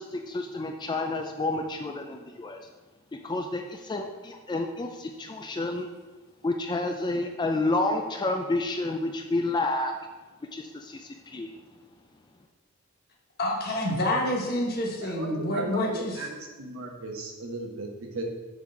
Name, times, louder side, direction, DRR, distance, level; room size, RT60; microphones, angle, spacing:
voice 1, 0.0-2.6 3.1-5.9 6.4-9.9 10.5-11.5, left 2 dB, 20° left, 3 dB, 0.4 m, -30 dB
voice 2, 13.4-16.2, left 1 dB, 50° left, -1 dB, 1.2 m, -28 dB
voice 3, 15.0-18.2, right 2 dB, 75° right, 1 dB, 1.1 m, -36 dB
7.1 x 4.0 x 4.7 m, 1.3 s
head